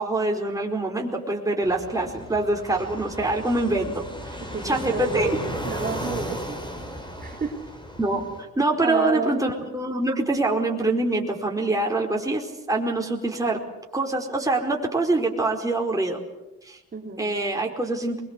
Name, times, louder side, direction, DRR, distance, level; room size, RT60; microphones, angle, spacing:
voice 1, 0.0-4.0 4.6-5.4 8.0-8.2 8.6-13.6 13.9-16.2 16.7-16.8 17.2-18.2, right 2 dB, 10° right, 0 dB, 4.8 m, -25 dB
Fixed-wing aircraft airplane, 1.6-8.4, equal, 15° left, 4.9 m, -35 dB
voice 2, 4.5-6.6 7.2-7.6 8.8-9.4 16.9-17.2, right 5 dB, 30° right, -2 dB, 3.8 m, -30 dB
23.5 x 22.5 x 8.3 m, 0.99 s
cardioid pair, 90°, 30 cm